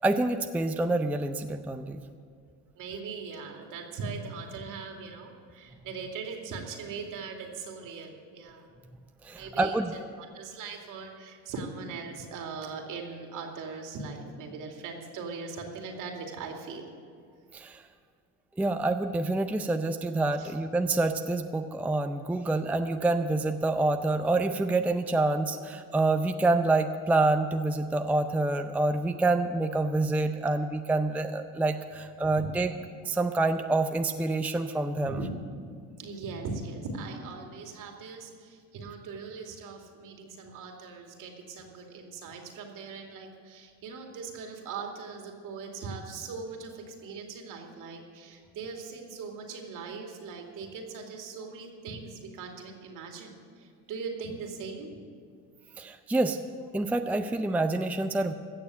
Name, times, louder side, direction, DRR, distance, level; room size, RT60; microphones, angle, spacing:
voice 1, 0.0-2.0 9.2-9.9 17.5-17.8 18.6-32.7 33.0-35.3 55.8-56.4 56.7-58.3, right 2 dB, 5° right, 7 dB, 0.5 m, -27 dB
voice 2, 2.7-8.7 9.3-9.8 10.2-16.9 20.4-20.5 32.2-32.5 35.0-35.4 36.0-54.9, right 4 dB, 60° right, 2 dB, 2.5 m, -40 dB
16.0 x 6.8 x 8.4 m, 2.2 s
supercardioid pair, 95°, 36 cm